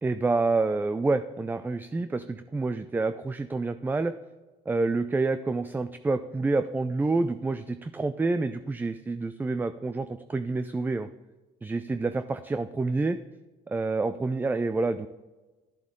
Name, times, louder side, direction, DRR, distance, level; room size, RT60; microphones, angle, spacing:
voice 1, 0.0-4.1 4.7-11.1 11.6-13.2 13.7-15.1, right 3 dB, 10° right, 11 dB, 0.3 m, -28 dB
11.5 x 7.6 x 3.7 m, 1.2 s
cardioid pair, 110°, 17 cm